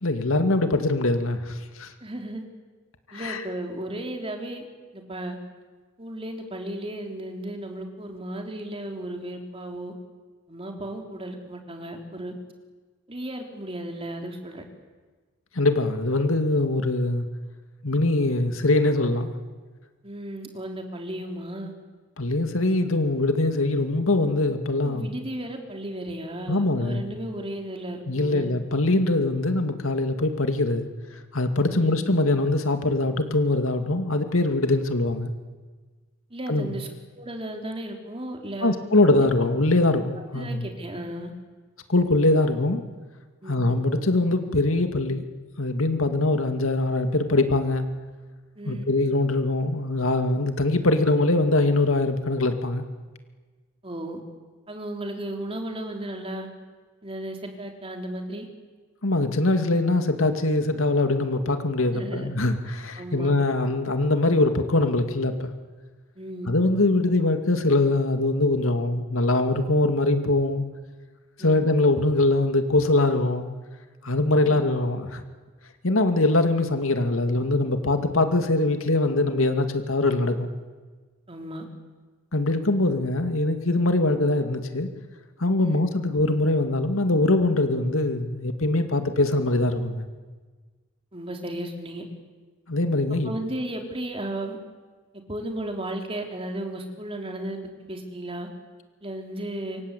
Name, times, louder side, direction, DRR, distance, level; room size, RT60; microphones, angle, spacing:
voice 1, 0.0-1.9 3.1-3.4 15.5-17.3 17.8-19.3 22.2-25.1 26.5-27.1 28.1-30.9 31.3-35.3 36.5-36.7 38.6-40.7 41.9-42.8 43.5-45.3 45.6-47.9 48.7-52.8 59.0-65.5 66.5-70.6 71.4-73.5 74.0-75.2 75.8-80.5 82.3-84.9 85.4-90.0 92.7-93.3, left 2 dB, 85° left, 7 dB, 2.4 m, -22 dB
voice 2, 2.0-2.4 3.1-4.7 4.9-5.4 6.0-9.9 10.5-12.4 13.1-14.6 20.0-21.7 24.8-28.5 31.7-32.0 36.3-36.9 37.1-39.0 40.3-41.3 43.4-43.6 48.6-48.9 53.8-54.2 54.7-56.5 57.0-58.5 61.9-62.3 63.0-63.3 66.2-66.5 71.4-71.6 81.3-81.7 85.6-85.8 91.1-92.0 93.2-94.6 95.3-97.6 97.9-98.5 99.0-99.8, right 1 dB, 25° right, 3 dB, 3.6 m, -34 dB
27.5 x 24.5 x 8.5 m, 1.4 s
head